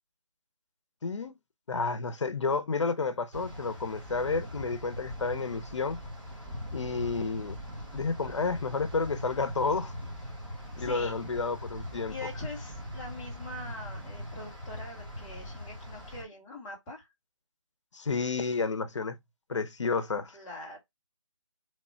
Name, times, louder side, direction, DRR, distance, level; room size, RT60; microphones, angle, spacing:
voice 1, 1.0-1.3 1.7-6.0 6.7-7.6 7.9-9.9 10.8-12.2 17.9-19.2 19.5-20.4, left 4 dB, 65° left, 0.7 m, -31 dB
sound 1, 3.3-16.2, equal, 20° right, 1.2 m, -41 dB
voice 2, 10.8-11.2 12.1-17.1 20.3-20.8, left 2 dB, 10° left, 0.8 m, -43 dB
3.1 x 2.3 x 4.3 m
figure-of-eight pair, 165°, 16 cm